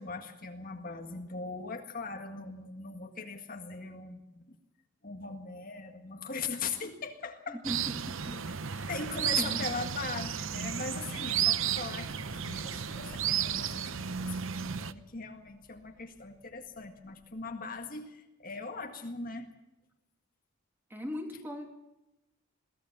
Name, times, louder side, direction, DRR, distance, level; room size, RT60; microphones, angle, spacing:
voice 1, 0.0-4.5 5.0-7.6 8.3-8.6 8.9-19.6, left 4 dB, 40° left, 4 dB, 1.8 m, -40 dB
voice 2, 7.6-8.9 9.4-9.6 20.9-21.7, equal, 10° right, 3 dB, 2.8 m, -39 dB
sound 1, 7.6-14.9, right 8 dB, 65° right, 0.8 m, -33 dB
sound 2, 11.9-17.9, left 1 dB, 70° left, 2.8 m, -57 dB
22.5 x 17.5 x 7.2 m, 0.93 s
head